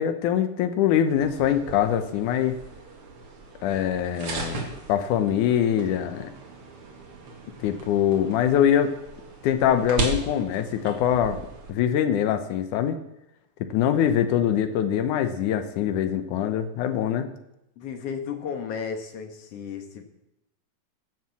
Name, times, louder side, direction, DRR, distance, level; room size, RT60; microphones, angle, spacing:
voice 1, 0.0-2.6 3.6-4.6 4.9-6.3 7.6-8.9 9.4-11.4 11.7-13.0 13.6-17.3, left 9 dB, 80° left, 9 dB, 2.4 m, -23 dB
sound 1, 1.1-11.7, right 3 dB, 50° right, 2.6 m, -37 dB
voice 2, 17.8-20.0, left 6 dB, 55° left, 5 dB, 2.3 m, -34 dB
16.0 x 7.7 x 7.1 m, 0.87 s
omnidirectional pair, 3.5 m